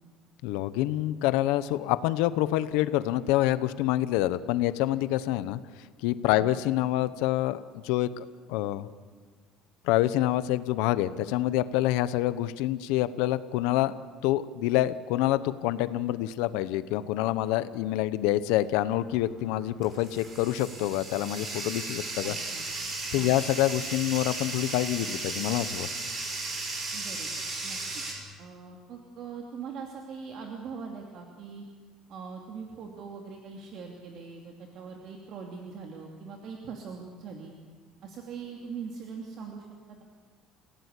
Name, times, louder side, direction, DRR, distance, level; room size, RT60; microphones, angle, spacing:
voice 1, 0.4-5.6 6.0-8.9 9.8-13.9 14.2-22.4 23.1-25.9, left 14 dB, 85° left, 14 dB, 1.0 m, -27 dB
Bathtub (filling or washing), 18.9-28.1, right 3 dB, 30° right, 6.2 m, -36 dB
voice 2, 22.2-22.6 23.2-23.3 26.9-27.3 27.6-28.0 28.4-31.6 32.1-37.5 38.0-39.7, right 5 dB, 50° right, 1 dB, 2.8 m, -41 dB
29.5 x 17.0 x 8.4 m, 1.5 s
cardioid pair, 140°, 0 cm